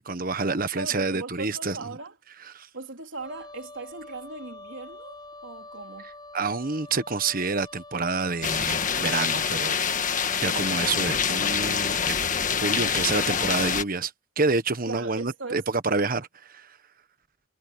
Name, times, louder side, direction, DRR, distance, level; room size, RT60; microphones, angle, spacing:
voice 1, 0.0-1.8 2.5-2.7 6.3-9.8 10.4-12.2 12.6-16.8, right 3 dB, 45° right, 1.3 m, -28 dB
voice 2, 0.7-2.2 2.7-6.1 12.8-13.1 14.9-15.6, right 3 dB, 80° right, 3.6 m, -39 dB
Wind instrument woodwind instrument, 3.2-12.3, left 2 dB, 20° left, 7.0 m, -46 dB
sound 1, 8.4-13.8, left 7 dB, 40° left, 1.5 m, -26 dB
head